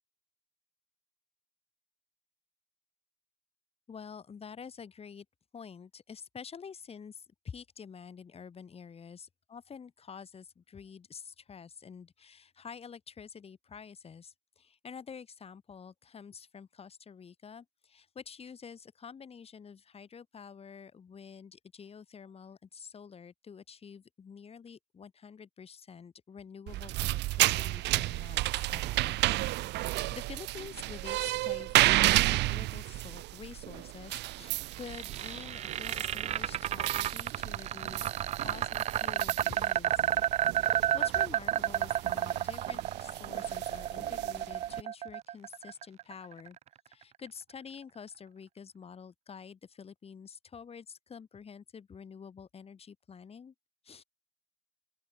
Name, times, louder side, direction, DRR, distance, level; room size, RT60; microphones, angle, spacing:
voice 1, 3.9-5.3 5.5-29.3 29.6-46.6 46.9-53.5 53.8-54.0, left 6 dB, 35° left, 7.3 m, -48 dB
sound 1, 26.7-44.8, right 18 dB, 70° right, 1.5 m, -32 dB
sound 2, 34.5-46.6, right 11 dB, 35° right, 0.4 m, -31 dB
open air
cardioid pair, 105°, 19 cm